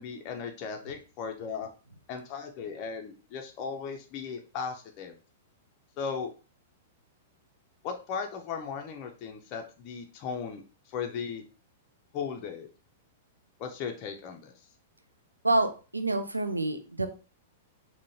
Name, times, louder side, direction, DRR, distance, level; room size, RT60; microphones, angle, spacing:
voice 1, 0.0-1.7 2.1-5.2 6.0-6.3 7.8-10.6 10.9-11.4 12.1-12.7 13.6-14.6, left 6 dB, 40° left, 3 dB, 0.5 m, -37 dB
voice 2, 15.4-17.1, right 2 dB, 90° right, 7 dB, 0.4 m, -27 dB
3.6 x 2.1 x 2.7 m, 0.34 s
figure-of-eight pair, 105°, 0 cm